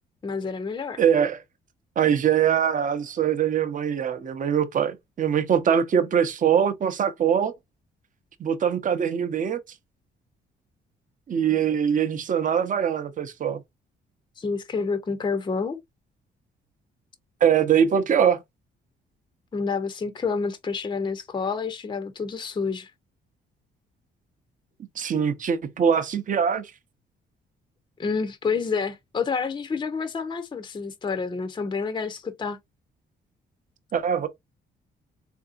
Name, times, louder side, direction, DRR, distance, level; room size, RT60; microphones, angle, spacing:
voice 1, 0.2-1.0 14.4-15.8 19.5-22.9 28.0-32.6, left 5 dB, 25° left, 0.5 m, -28 dB
voice 2, 1.0-1.4 2.0-7.5 8.4-9.6 11.3-13.6 17.4-18.4 25.0-26.7 33.9-34.3, right 8 dB, 40° right, 0.6 m, -22 dB
3.6 x 2.6 x 2.4 m
cardioid pair, 90°, 20 cm